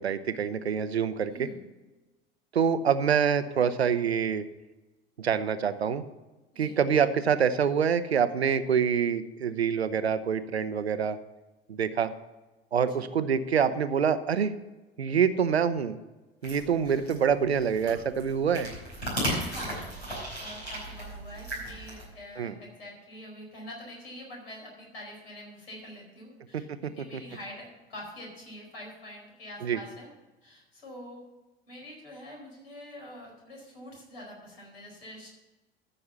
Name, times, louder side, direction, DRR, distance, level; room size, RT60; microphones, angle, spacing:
voice 1, 0.0-1.5 2.5-4.4 5.2-6.0 6.6-11.2 11.7-12.1 12.7-14.5 15.0-16.0 16.4-18.7 22.4-22.5 26.5-26.6 29.6-29.8, right 7 dB, 80° right, 12 dB, 0.7 m, -26 dB
voice 2, 1.3-1.6 6.5-6.8 12.8-13.0 16.8-17.1 19.4-19.9 20.4-30.1 30.4-31.3 31.7-35.3, left 1 dB, 70° left, -1 dB, 4.8 m, -45 dB
sound 1, 16.4-22.0, equal, 90° left, 4.8 m, -36 dB
14.0 x 6.6 x 5.6 m, 1.1 s
figure-of-eight pair, 70°, 31 cm